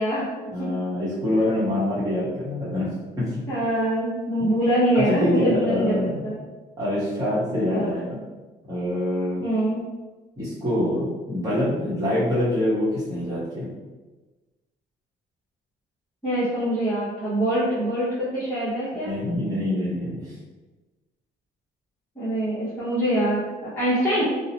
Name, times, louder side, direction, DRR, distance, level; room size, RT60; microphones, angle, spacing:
voice 1, 0.0-0.3 0.6-0.7 3.5-6.0 6.2-6.4 7.7-7.9 9.4-9.8 16.2-19.1 22.2-24.2, right 1 dB, 10° left, -12 dB, 1.0 m, -24 dB
voice 2, 0.5-3.4 4.4-4.5 4.9-6.2 6.8-8.2 8.7-9.4 10.4-13.7 19.0-20.4, left 1 dB, 20° right, -10 dB, 1.0 m, -25 dB
2.7 x 2.1 x 2.8 m, 1.2 s
cardioid pair, 110°, 17 cm